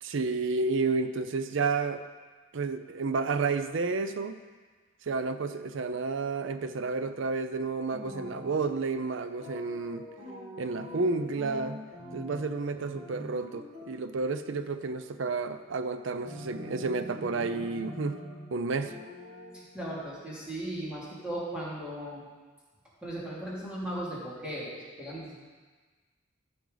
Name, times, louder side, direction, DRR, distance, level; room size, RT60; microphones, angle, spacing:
voice 1, 0.0-2.0 2.5-4.4 5.0-10.0 10.6-11.8 12.1-18.2 18.5-18.9, right 4 dB, 70° right, 10 dB, 0.5 m, -31 dB
sound 1, 7.9-8.7 9.4-12.5 12.8-14.0 16.2-18.5 18.8-19.5, left 1 dB, 35° right, 1.8 m, -44 dB
voice 2, 19.5-22.2 23.0-25.4, right 1 dB, 5° right, -8 dB, 2.6 m, -37 dB
14.0 x 6.1 x 3.9 m, 1.4 s
head